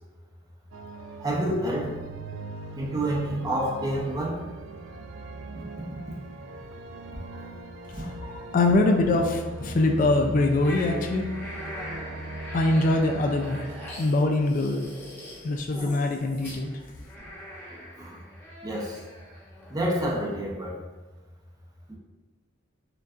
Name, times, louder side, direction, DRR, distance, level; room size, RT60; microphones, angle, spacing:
sound 1, 0.7-13.9, right 2 dB, 80° right, 0.4 m, -40 dB
voice 1, 1.2-2.0 2.8-4.4 7.4-7.5 11.7-11.9 18.0-18.2 18.6-19.0 19.7-20.8 21.9-22.0, right 1 dB, 20° right, -3 dB, 0.7 m, -28 dB
voice 2, 8.0-11.3 11.8-11.9 12.5-13.6 14.0-14.9 15.4-16.7, left 2 dB, 45° left, 4 dB, 0.3 m, -23 dB
sound 2, 10.6-19.8, left 1 dB, 10° left, 1.0 m, -41 dB
6.5 x 2.3 x 2.5 m, 1.2 s
head